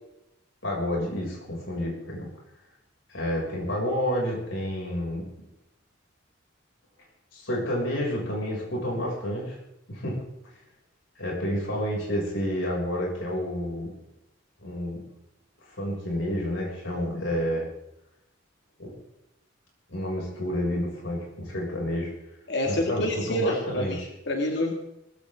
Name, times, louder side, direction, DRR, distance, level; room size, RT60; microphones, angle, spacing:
voice 1, 0.6-2.3 3.1-5.2 7.3-9.5 9.9-10.2 11.1-13.9 14.6-15.1 15.7-17.7 18.8-18.9 19.9-22.1 22.6-24.1, equal, 80° left, -3 dB, 6.7 m, -29 dB
voice 2, 22.5-24.7, left 1 dB, 60° left, 1 dB, 2.3 m, -28 dB
20.0 x 17.0 x 3.8 m, 0.86 s
head